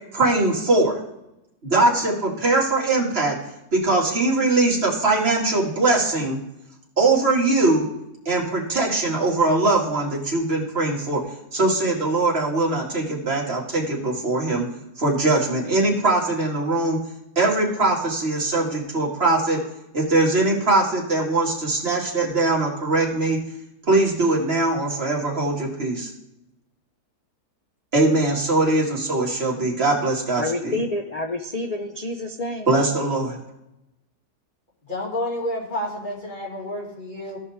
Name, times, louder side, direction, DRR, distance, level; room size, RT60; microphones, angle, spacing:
voice 1, 0.1-1.0 1.6-3.4 3.7-6.4 7.0-7.9 8.3-11.2 11.5-14.6 15.0-17.0 17.4-19.6 19.9-23.4 23.9-26.1 27.9-30.8 32.7-33.4, right 2 dB, 40° right, -3 dB, 2.4 m, -21 dB
voice 2, 30.4-32.7, left 2 dB, 90° left, 3 dB, 0.3 m, -28 dB
voice 3, 34.9-37.4, left 1 dB, 30° left, -3 dB, 2.5 m, -29 dB
16.0 x 5.6 x 3.5 m, 0.90 s
omnidirectional pair, 1.7 m